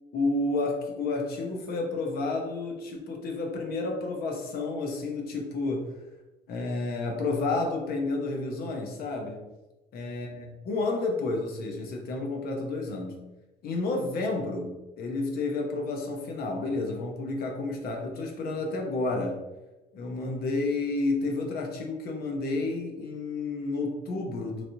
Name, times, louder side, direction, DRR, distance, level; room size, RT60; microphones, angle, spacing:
voice 1, 0.1-5.9 6.5-9.4 9.9-13.2 13.6-19.4 19.9-24.6, left 3 dB, 65° left, 1 dB, 0.8 m, -30 dB
3.1 x 2.8 x 2.6 m, 1.1 s
cardioid pair, 110°, 17 cm